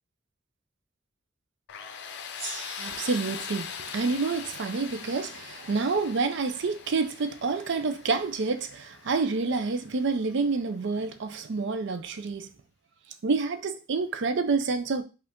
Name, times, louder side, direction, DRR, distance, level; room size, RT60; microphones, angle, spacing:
Tools, 1.7-10.4, left 7 dB, 60° left, 0.5 m, -42 dB
Gong, 2.3-5.5, right 2 dB, 85° right, 1.2 m, -44 dB
voice 1, 2.8-3.7 3.9-12.5 13.2-15.0, right 4 dB, 65° right, 0.5 m, -28 dB
4.9 x 2.5 x 3.6 m
head